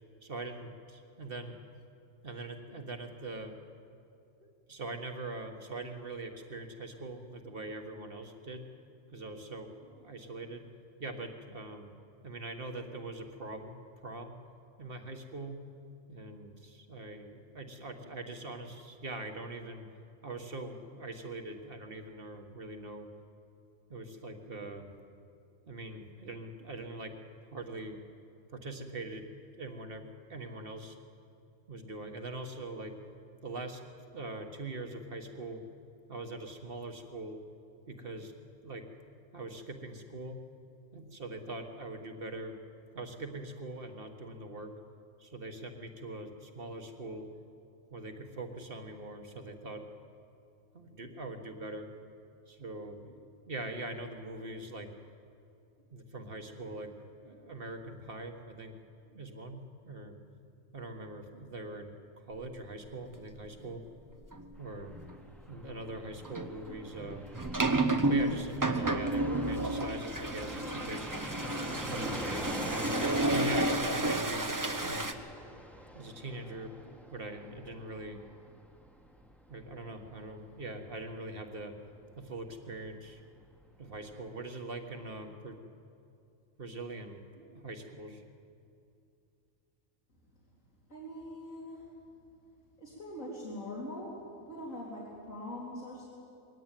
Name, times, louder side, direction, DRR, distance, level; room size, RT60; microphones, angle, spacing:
voice 1, 0.2-1.6 2.2-3.5 4.4-8.7 9.1-10.6 11.0-11.9 12.2-13.8 14.0-14.4 14.8-15.6 16.1-19.9 20.2-23.1 23.9-24.9 25.7-27.1 27.5-28.0 28.5-29.3 29.6-31.0 31.7-33.0 33.4-33.8 34.1-35.6 36.1-37.4 37.9-38.3 38.6-38.9 39.3-40.4 40.9-42.6 42.9-44.7 45.2-47.3 47.9-49.8 50.7-51.9 52.5-54.9 55.9-56.9 57.2-58.7 59.0-60.2 60.7-63.8 64.6-65.0 65.5-67.3 68.1-71.1 71.9-73.0 73.3-75.1 75.9-78.2 79.5-81.8 82.2-83.2 83.8-85.6 86.6-88.2, right 2 dB, 45° right, 5 dB, 1.7 m, -42 dB
sound 1, 64.3-64.4 64.9-65.1 66.2-75.1, right 2 dB, 15° right, 0.9 m, -31 dB
Fixed-wing aircraft airplane, 64.6-82.9 83.2-83.3 83.5-84.2, equal, ahead, 1.4 m, -44 dB
voice 2, 90.9-91.9 92.8-96.1, left 1 dB, 80° left, -5 dB, 4.1 m, -42 dB
22.0 x 17.5 x 9.1 m, 2.5 s
omnidirectional pair, 1.4 m